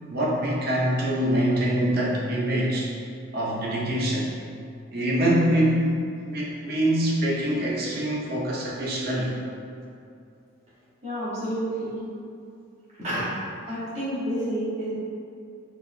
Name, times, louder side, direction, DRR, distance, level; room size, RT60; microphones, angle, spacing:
voice 1, 0.1-2.9 3.3-4.3 4.9-6.0 6.2-9.3, right 1 dB, 45° right, -5 dB, 0.7 m, -24 dB
voice 2, 11.0-12.0 13.0-13.3 13.7-14.9, equal, 30° right, -10 dB, 1.2 m, -29 dB
4.3 x 3.4 x 2.2 m, 2.5 s
head